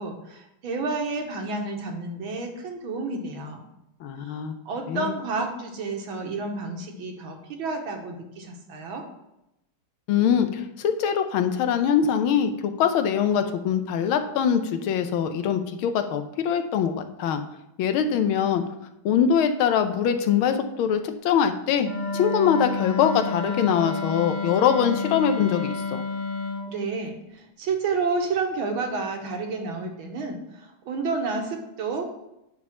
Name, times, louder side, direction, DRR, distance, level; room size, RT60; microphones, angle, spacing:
voice 1, 0.0-3.6 4.2-9.0 26.7-32.1, right 3 dB, 75° right, 3 dB, 2.0 m, -30 dB
voice 2, 4.0-4.6 4.9-5.1 10.1-17.4 17.8-18.6 19.0-26.0, left 8 dB, 85° left, 8 dB, 1.5 m, -23 dB
Wind instrument woodwind instrument, 21.8-26.7, left 4 dB, 60° left, 0.4 m, -30 dB
9.7 x 3.6 x 5.9 m, 0.86 s
omnidirectional pair, 2.3 m